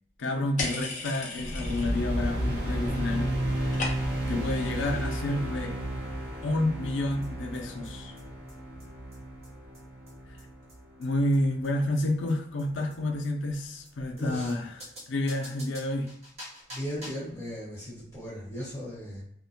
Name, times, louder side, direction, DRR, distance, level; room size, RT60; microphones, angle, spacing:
voice 1, 0.2-3.3 4.3-5.8 6.4-8.1 11.0-14.7 15.1-16.1, left 1 dB, 90° left, 4 dB, 0.5 m, -29 dB
sound 1, 0.6-2.2 2.5-3.0 3.3-4.3, left 3 dB, 40° left, 0.5 m, -36 dB
sound 2, 1.4-11.9, right 1 dB, 60° right, 0.8 m, -33 dB
sound 3, 7.2-7.3 7.5-7.6 7.8-7.9 8.2-8.3 8.5-8.6 8.8-8.9 9.1-9.2 9.4-9.5 9.7-9.8 10.1-10.2 10.4-10.5 10.7-10.8 11.0-11.1 11.3-11.4 11.6-11.7 12.0-12.1 12.3-12.4 12.6-12.7 12.9-13.0 13.2-13.3 13.5-13.6 13.8-13.9 14.2-14.3 14.5-14.6 14.8-17.3, equal, 35° right, 0.9 m, -46 dB
voice 2, 14.2-14.6 16.7-19.2, equal, 20° left, -8 dB, 1.1 m, -37 dB
2.5 x 2.1 x 2.7 m, 0.69 s
head